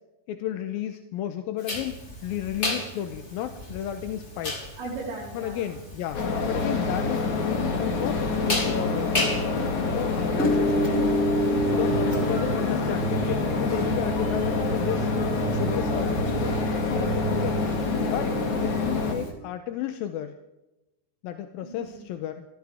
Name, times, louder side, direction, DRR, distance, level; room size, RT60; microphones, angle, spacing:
voice 1, 0.3-4.7 5.3-11.0 11.6-15.1 15.5-16.6 17.3-17.6 18.1-18.3 18.6-20.4 21.2-22.5, left 11 dB, 75° left, 7 dB, 2.4 m, -33 dB
sound 1, 1.6-19.3, equal, 20° left, 2.3 m, -31 dB
voice 2, 4.8-5.8 17.7-18.6 21.6-22.1, right 3 dB, 70° right, -9 dB, 6.3 m, -38 dB
sound 2, 6.1-19.1, left 4 dB, 50° left, 3.2 m, -27 dB
sound 3, 11.6-17.7, right 11 dB, 90° right, 3.2 m, -34 dB
23.5 x 16.5 x 3.5 m, 0.95 s
omnidirectional pair, 4.6 m